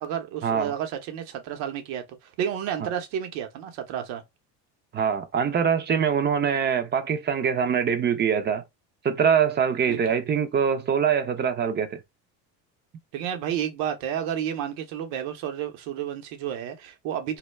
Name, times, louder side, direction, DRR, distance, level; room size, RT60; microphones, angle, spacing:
voice 1, 0.0-4.2 9.9-10.0 13.1-17.4, right 9 dB, 80° right, 0.8 m, -31 dB
voice 2, 4.9-8.6 9.0-12.0, right 7 dB, 25° right, 0.3 m, -23 dB
2.2 x 2.2 x 3.1 m
supercardioid pair, 100°, 44 cm